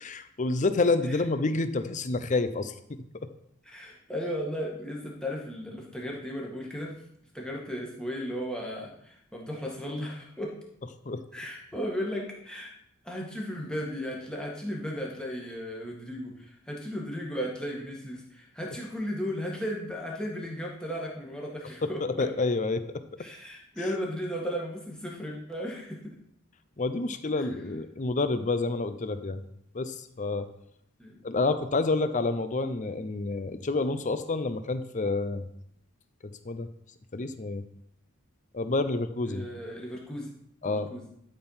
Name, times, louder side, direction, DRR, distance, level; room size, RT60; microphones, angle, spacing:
voice 1, 0.0-2.7 11.1-11.2 21.8-22.8 26.8-29.4 29.7-30.5 31.2-35.5 36.4-36.7 37.1-37.6 38.5-39.5 40.6-40.9, left 3 dB, 35° left, 11 dB, 0.6 m, -28 dB
voice 2, 3.7-6.9 7.3-10.5 11.3-12.7 13.0-22.3 23.2-26.2 27.4-27.5 31.0-31.2 39.3-40.3 40.6-41.0, equal, 5° left, -2 dB, 1.8 m, -35 dB
12.0 x 4.5 x 5.6 m, 0.74 s
head